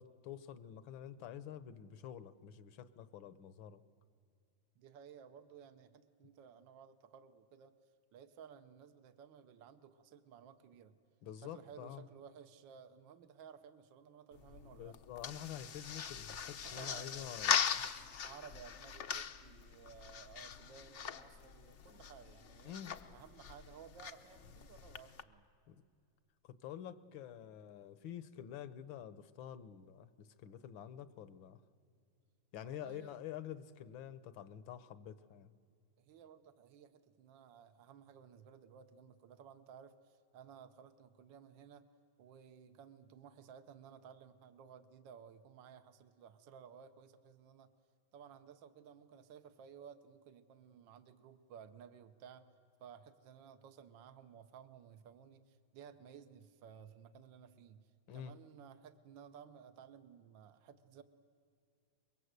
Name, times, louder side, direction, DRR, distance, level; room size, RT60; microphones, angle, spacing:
voice 1, 0.0-3.8 11.2-12.1 14.8-17.9 22.6-23.0 25.7-25.8 26.4-31.6 32.5-35.5 58.1-58.4, left 10 dB, 75° left, 14 dB, 1.7 m, -48 dB
voice 2, 4.8-7.8 8.1-11.0 11.4-15.0 16.5-17.4 18.2-22.7 23.1-25.4 32.6-33.2 36.0-41.9 42.2-47.7 48.1-52.5 52.8-61.0, right 7 dB, 70° right, 9 dB, 1.6 m, -56 dB
sound 1, 14.3-25.2, left 7 dB, 55° left, 0.8 m, -41 dB
25.0 x 22.5 x 8.1 m, 2.3 s
omnidirectional pair, 2.2 m